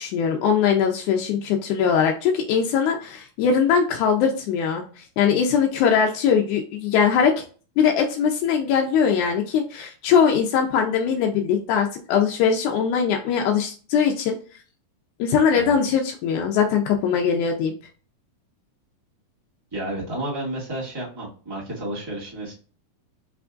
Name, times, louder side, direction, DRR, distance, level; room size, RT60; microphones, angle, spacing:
voice 1, 0.0-7.4 7.8-14.4 15.2-17.7, left 7 dB, 85° left, 2 dB, 1.7 m, -21 dB
voice 2, 19.7-22.5, right 1 dB, 15° right, -6 dB, 0.9 m, -31 dB
5.1 x 3.5 x 2.4 m, 0.38 s
omnidirectional pair, 4.1 m